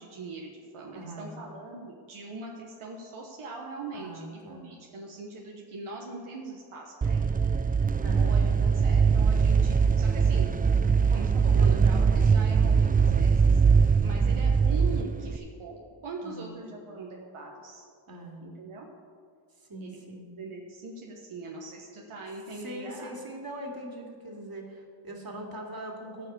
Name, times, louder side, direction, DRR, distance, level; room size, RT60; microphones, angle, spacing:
voice 1, 0.0-7.4 8.1-10.5 11.1-13.4 14.0-17.9 18.4-18.9 19.8-23.1, right 3 dB, 80° right, -1 dB, 1.3 m, -41 dB
voice 2, 0.9-1.4 3.9-4.7 8.0-8.4 10.8-11.1 11.5-11.9 14.1-14.5 16.2-16.5 18.1-18.5 19.7-20.3 22.5-26.3, right 1 dB, 45° right, 1 dB, 2.5 m, -41 dB
sound 1, 7.0-15.4, right 5 dB, 20° right, 0.4 m, -22 dB
13.5 x 4.8 x 7.9 m, 2.2 s
cardioid pair, 50°, 49 cm